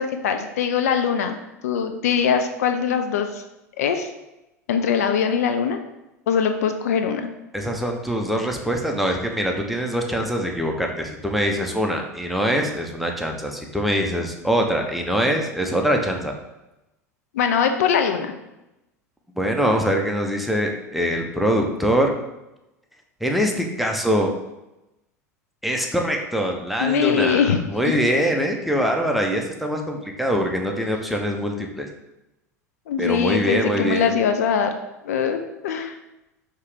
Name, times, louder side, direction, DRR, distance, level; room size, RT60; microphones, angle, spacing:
voice 1, 0.0-1.4 1.6-3.4 3.8-4.1 4.7-5.8 6.3-7.3 17.3-18.3 26.8-27.6 32.9-34.7 35.0-36.0, left 7 dB, 70° left, 7 dB, 0.4 m, -22 dB
voice 2, 7.5-16.3 19.4-22.1 23.2-24.3 25.6-31.9 33.0-34.1, equal, ahead, 2 dB, 0.6 m, -23 dB
4.7 x 2.9 x 3.4 m, 0.94 s
figure-of-eight pair, 80°, 9 cm